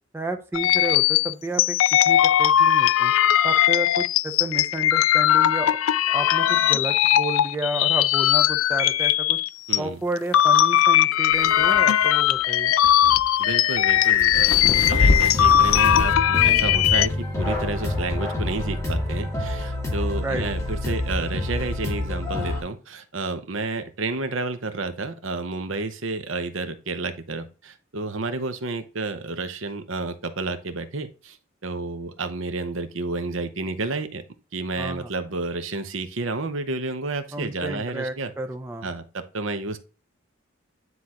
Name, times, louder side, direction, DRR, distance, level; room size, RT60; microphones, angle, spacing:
voice 1, 0.1-1.8 2.0-3.1 3.4-5.8 6.1-9.4 9.8-12.7 20.2-20.4 34.8-35.1 37.3-38.9, right 2 dB, 10° right, 5 dB, 0.6 m, -31 dB
sound 1, 0.5-9.8 10.2-17.1, left 11 dB, 85° left, 0.3 m, -19 dB
voice 2, 9.7-10.0 13.4-31.4 31.6-34.2 34.5-38.3 38.8-39.8, right 3 dB, 70° right, 9 dB, 0.8 m, -31 dB
sound 2, 11.3-16.1, left 2 dB, 60° left, 0.7 m, -27 dB
sound 3, 14.7-22.6, left 1 dB, 15° left, 2.3 m, -27 dB
9.6 x 3.9 x 2.9 m, 0.34 s
head